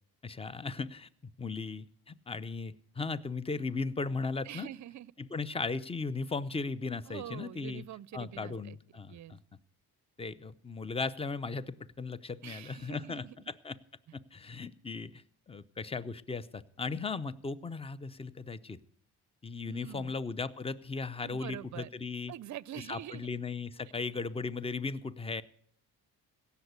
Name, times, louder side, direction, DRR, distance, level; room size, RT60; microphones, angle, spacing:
voice 1, 0.2-1.1 1.4-4.7 5.2-7.8 8.1-9.4 10.2-13.8 14.1-18.8 19.4-22.3 22.9-25.4, left 4 dB, 15° left, 17 dB, 0.6 m, -37 dB
voice 2, 4.4-5.1 7.1-8.8 9.1-9.4 12.4-13.5 19.7-20.2 21.2-21.9 22.3-23.3, right 12 dB, 45° right, 22 dB, 0.5 m, -45 dB
16.5 x 7.0 x 8.0 m, 0.63 s
cardioid pair, 75°, 41 cm